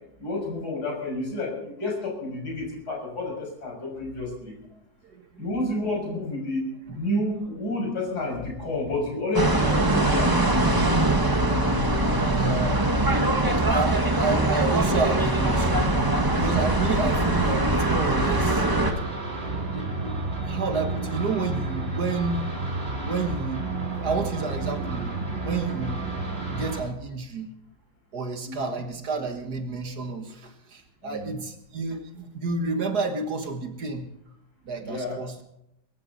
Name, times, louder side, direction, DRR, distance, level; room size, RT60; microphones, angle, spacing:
voice 1, 0.2-4.5 5.4-10.8 28.4-28.6 31.0-31.3 34.8-35.2, left 1 dB, 65° left, -2 dB, 7.0 m, -30 dB
sound 1, 9.3-18.9, right 1 dB, 15° right, 1.2 m, -22 dB
voice 2, 12.3-12.8 13.6-15.9 16.4-18.7 19.4-20.2 20.5-22.4 23.0-23.6 24.0-25.1 25.4-26.0 26.5-27.5 28.1-34.1 34.6-35.4, right 4 dB, 65° right, 6 dB, 2.0 m, -30 dB
sound 2, 15.3-26.8, right 3 dB, 35° right, 3.9 m, -31 dB
23.0 x 14.0 x 4.1 m, 0.81 s
omnidirectional pair, 1.9 m